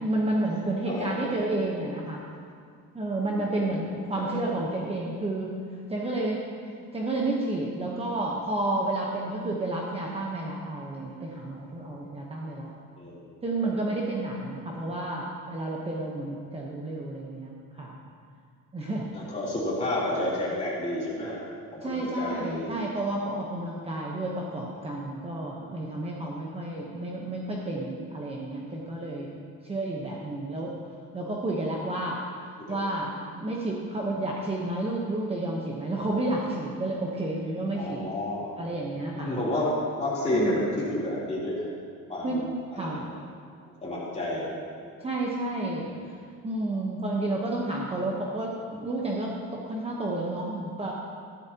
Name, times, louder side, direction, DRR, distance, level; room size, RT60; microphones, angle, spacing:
voice 1, 0.0-2.2 2.9-5.6 5.9-6.4 6.9-12.7 13.4-18.0 18.7-19.3 21.8-29.3 29.6-30.7 31.1-32.2 32.7-38.0 38.6-39.4 40.3-40.6 42.2-42.4 42.7-43.0 45.0-45.9 46.4-50.9, right 2 dB, 20° right, -3 dB, 1.0 m, -31 dB
voice 2, 0.9-1.6 3.3-3.7 4.1-4.6 13.0-13.4 19.1-21.4 21.7-22.9 32.7-32.8 37.7-38.5 39.1-41.7 42.1-43.0 43.8-44.5 45.8-45.9, left 1 dB, 20° left, -7 dB, 3.3 m, -31 dB
14.0 x 12.0 x 2.9 m, 2.2 s
cardioid pair, 150°, 31 cm